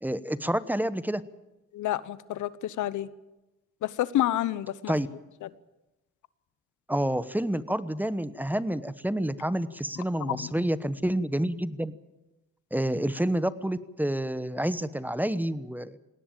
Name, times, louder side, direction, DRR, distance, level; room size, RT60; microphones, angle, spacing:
voice 1, 0.0-1.2 4.9-5.1 6.9-11.9 12.7-16.0, right 1 dB, 5° right, 14 dB, 1.0 m, -28 dB
voice 2, 1.7-3.1 3.8-4.9 5.4-5.5 10.2-10.5, left 13 dB, 80° left, 17 dB, 1.0 m, -29 dB
20.0 x 17.5 x 9.0 m, 1.0 s
cardioid pair, 90°, 30 cm